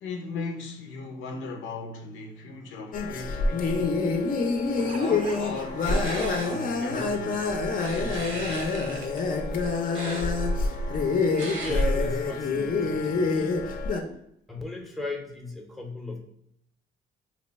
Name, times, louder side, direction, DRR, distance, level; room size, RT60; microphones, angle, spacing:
voice 1, 0.0-4.0 4.8-7.6 7.9-9.1 14.0-14.2, left 4 dB, 90° left, 0.6 m, -38 dB
sound 1, 2.4-2.5 2.8-2.9 4.5-5.7 6.6-6.7 7.1-7.2, right 5 dB, 40° right, 0.4 m, -43 dB
sound 2, 2.9-14.0, left 3 dB, 45° left, 0.5 m, -26 dB
sound 3, 5.8-6.5 7.8-9.2 9.9-10.3 11.4-11.8, right 3 dB, 80° right, 0.9 m, -38 dB
voice 2, 11.6-13.6 14.5-16.2, left 2 dB, ahead, 0.6 m, -36 dB
2.9 x 2.2 x 3.9 m
cardioid pair, 90°, 20 cm